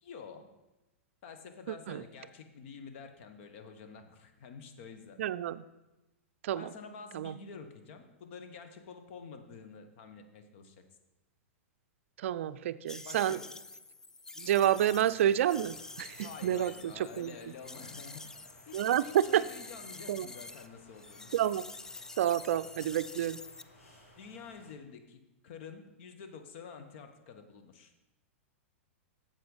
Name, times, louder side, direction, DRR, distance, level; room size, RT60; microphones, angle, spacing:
voice 1, 0.0-0.5 1.2-5.2 6.5-10.7 13.0-13.5 16.2-18.3 18.7-21.3 24.2-27.9, left 5 dB, 60° left, 7 dB, 1.3 m, -49 dB
voice 2, 1.7-2.0 5.2-5.6 6.4-6.7 7.1-7.4 12.2-13.4 14.4-17.3 18.7-19.4 20.1-20.3 21.3-21.6 22.2-23.4, right 11 dB, 65° right, 15 dB, 0.4 m, -29 dB
sound 1, 12.9-20.7 21.0-23.6, left 3 dB, 10° left, 0.3 m, -48 dB
sound 2, 14.4-24.7, equal, 90° left, 2.9 m, -59 dB
7.9 x 7.5 x 5.4 m, 0.99 s
hypercardioid pair, 115°, 7 cm